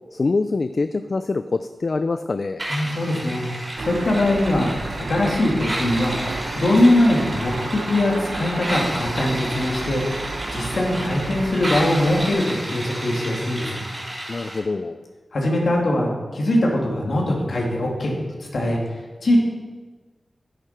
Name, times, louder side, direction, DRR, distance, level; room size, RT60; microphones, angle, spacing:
voice 1, 0.1-2.6 14.3-15.0, left 3 dB, 55° left, 10 dB, 0.4 m, -24 dB
sound 1, 2.6-14.6, right 1 dB, 30° right, 3.4 m, -32 dB
voice 2, 2.7-3.4 3.8-6.2 6.5-13.8 15.3-18.8 19.2-19.4, left 1 dB, 75° left, -2 dB, 2.4 m, -21 dB
sound 2, 3.8-12.3, right 3 dB, 80° right, 0.9 m, -33 dB
10.0 x 10.0 x 4.4 m, 1.3 s
wide cardioid pair, 65°, 0 cm